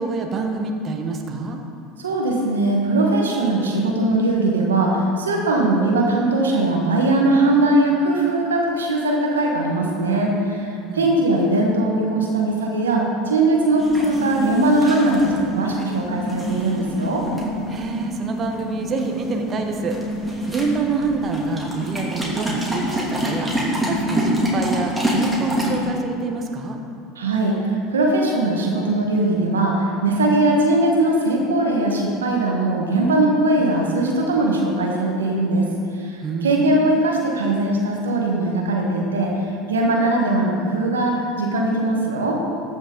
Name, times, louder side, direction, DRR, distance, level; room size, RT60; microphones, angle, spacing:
voice 1, 0.0-1.6 10.9-11.2 17.7-20.0 20.5-23.5 23.8-26.8 36.2-36.9, right 4 dB, 35° right, 3 dB, 1.1 m, -27 dB
voice 2, 2.0-17.2 27.2-35.7 35.9-39.3 39.7-42.4, right 2 dB, 90° right, 0 dB, 1.3 m, -20 dB
sound 1, 13.8-25.9, equal, 5° right, 2.5 m, -26 dB
14.0 x 6.2 x 3.8 m, 2.4 s
hypercardioid pair, 80°, 0 cm